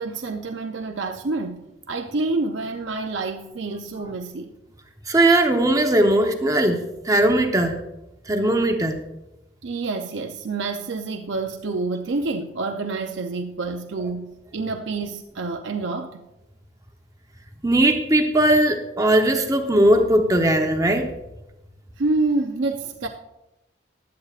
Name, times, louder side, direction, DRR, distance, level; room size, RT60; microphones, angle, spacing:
voice 1, 0.0-4.5 9.6-16.2 22.0-23.1, right 3 dB, 80° right, 0.6 m, -28 dB
voice 2, 5.1-7.8 8.3-9.0 17.6-21.1, right 1 dB, 20° right, 0.8 m, -19 dB
15.5 x 11.0 x 2.5 m
head